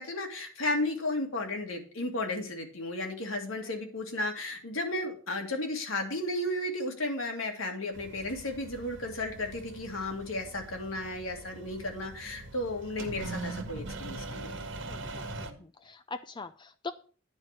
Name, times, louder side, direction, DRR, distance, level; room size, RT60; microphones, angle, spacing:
voice 1, 0.0-14.6, left 2 dB, 75° left, 3 dB, 2.1 m, -34 dB
sound 1, 7.9-15.5, right 2 dB, 60° right, 1.3 m, -42 dB
voice 2, 14.9-16.9, left 4 dB, 20° left, 9 dB, 0.4 m, -42 dB
9.8 x 4.9 x 6.5 m, 0.40 s
head